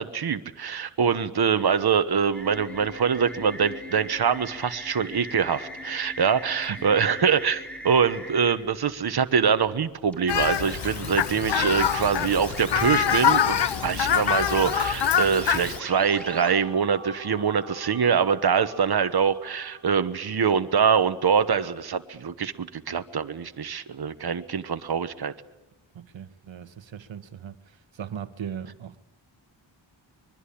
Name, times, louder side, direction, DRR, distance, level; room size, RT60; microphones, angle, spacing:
voice 1, 0.0-25.3, right 6 dB, 55° right, 1.2 m, -24 dB
sound 1, 2.3-8.5 10.1-16.5, equal, 5° left, 5.6 m, -40 dB
Fowl, 10.3-15.8, left 9 dB, 65° left, 0.8 m, -25 dB
sound 2, 15.8-21.1, right 3 dB, 35° right, 1.8 m, -46 dB
voice 2, 25.9-29.0, right 8 dB, 75° right, 1.3 m, -38 dB
24.5 x 22.5 x 8.6 m
wide cardioid pair, 135°, 46 cm